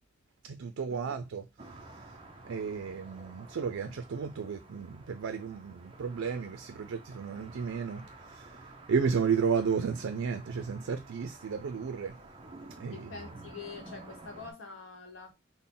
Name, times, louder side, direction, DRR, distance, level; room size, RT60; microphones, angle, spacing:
voice 1, 0.4-1.4 2.4-8.0 8.3-8.6 8.9-12.1 12.8-13.1, right 6 dB, 85° right, 0.4 m, -33 dB
sound 1, 1.6-14.5, right 2 dB, 25° right, 0.5 m, -51 dB
voice 2, 12.9-15.3, left 4 dB, 75° left, 0.9 m, -45 dB
3.8 x 2.1 x 3.7 m
head